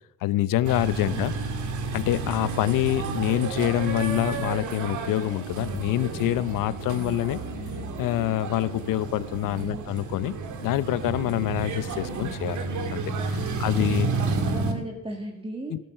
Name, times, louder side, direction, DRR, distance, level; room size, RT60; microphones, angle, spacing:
voice 1, 0.2-1.3 1.9-7.4 8.0-10.3 10.6-13.0 13.3-14.1 15.7-15.8, left 14 dB, 70° left, 17 dB, 0.7 m, -26 dB
sound 1, 0.6-14.7, right 4 dB, 55° right, 2.3 m, -31 dB
voice 2, 1.0-1.3 9.5-10.0 11.4-11.8 13.5-15.8, equal, 15° right, 1 dB, 2.1 m, -37 dB
13.0 x 11.0 x 5.6 m, 0.84 s
cardioid pair, 95°, 34 cm